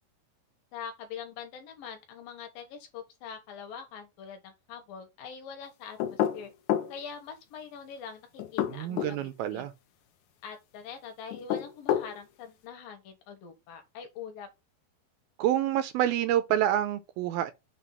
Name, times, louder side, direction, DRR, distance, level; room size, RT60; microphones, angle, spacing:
voice 1, 0.7-6.5 6.9-9.2 9.5-9.7 10.4-14.5, left 7 dB, 70° left, 2.7 m, -43 dB
sound 1, 6.0-6.9 8.4-9.2 11.3-12.1, left 11 dB, 90° left, 1.7 m, -28 dB
voice 2, 8.7-9.7 15.4-17.5, right 12 dB, 80° right, 2.2 m, -27 dB
6.9 x 2.7 x 5.4 m
omnidirectional pair, 4.4 m